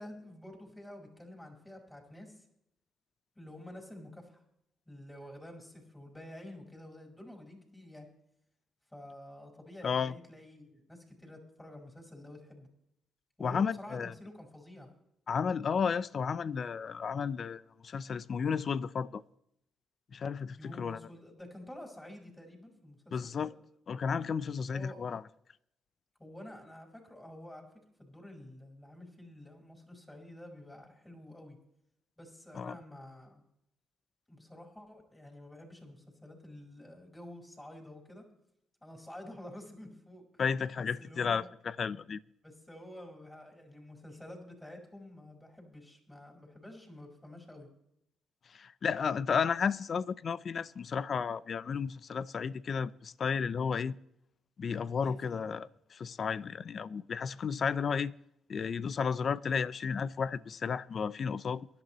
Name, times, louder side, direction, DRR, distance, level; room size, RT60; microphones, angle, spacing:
voice 1, 0.0-2.4 3.3-4.4 4.9-8.1 8.9-12.7 13.4-14.9 20.6-23.5 24.7-25.0 26.2-27.7 28.0-31.6 32.2-33.4 34.3-38.2 38.8-40.3 40.8-41.5 42.4-47.7 55.0-55.5, left 1 dB, 10° left, 4.8 m, -49 dB
voice 2, 9.8-10.1 13.4-14.1 15.3-19.2 20.1-21.0 23.1-23.5 23.9-25.2 32.5-32.8 40.4-42.2 48.5-53.9 54.6-58.1 58.5-61.7, left 6 dB, 50° left, 0.5 m, -33 dB
23.0 x 11.5 x 3.1 m
cardioid pair, 90°, 0 cm